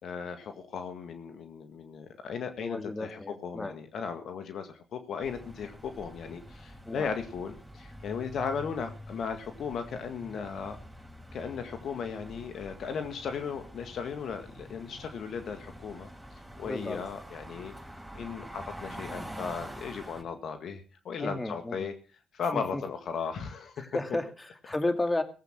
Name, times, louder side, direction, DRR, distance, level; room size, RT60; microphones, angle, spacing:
voice 1, 0.0-10.8 11.3-16.1 16.6-17.7 18.2-21.9 22.3-24.0, left 6 dB, 70° left, 7 dB, 1.9 m, -36 dB
voice 2, 2.6-3.7 6.9-7.1 16.6-17.0 21.2-21.9 22.5-22.8 23.8-25.2, left 2 dB, 20° left, 7 dB, 2.4 m, -33 dB
sound 1, 5.2-20.2, equal, 5° right, 6.0 m, -46 dB
18.0 x 8.2 x 6.2 m, 0.38 s
supercardioid pair, 55°, 0 cm